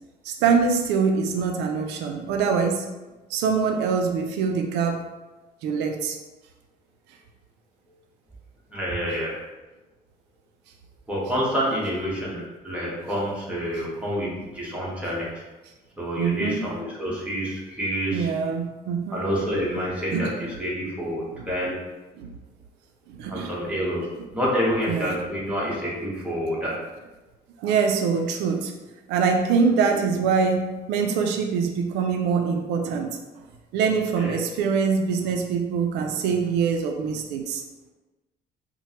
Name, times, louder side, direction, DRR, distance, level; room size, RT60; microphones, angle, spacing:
voice 1, 0.2-2.9 3.3-5.0 5.6-6.2 16.2-16.7 18.1-19.3 20.1-20.3 21.3-21.4 22.2-22.3 23.1-23.5 24.9-25.2 27.6-28.7 29.1-33.2 33.7-37.6, right 5 dB, 90° right, 4 dB, 0.4 m, -24 dB
voice 2, 8.7-9.4 11.1-15.4 16.0-18.3 19.1-21.8 23.2-24.1 24.3-26.8 34.2-34.4, equal, 5° right, -6 dB, 1.2 m, -28 dB
4.4 x 2.1 x 2.9 m, 1.1 s
cardioid pair, 110°, 17 cm